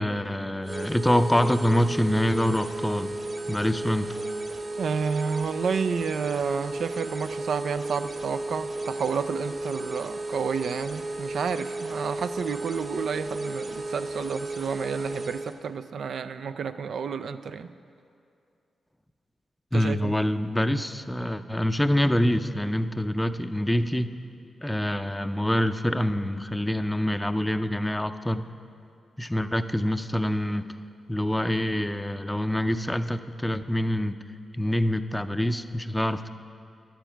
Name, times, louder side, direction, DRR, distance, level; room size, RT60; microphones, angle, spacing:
voice 1, 0.0-3.1 3.5-4.1 19.7-24.1 24.6-28.5 29.2-30.6 31.1-34.2 34.5-36.3, left 1 dB, 10° left, 10 dB, 0.5 m, -25 dB
sound 1, 0.6-15.6, right 2 dB, 40° right, 0.8 m, -34 dB
voice 2, 4.8-17.7 19.7-20.1, right 6 dB, 75° right, 11 dB, 0.3 m, -30 dB
11.0 x 9.1 x 4.5 m, 2.4 s
supercardioid pair, 50°, 0 cm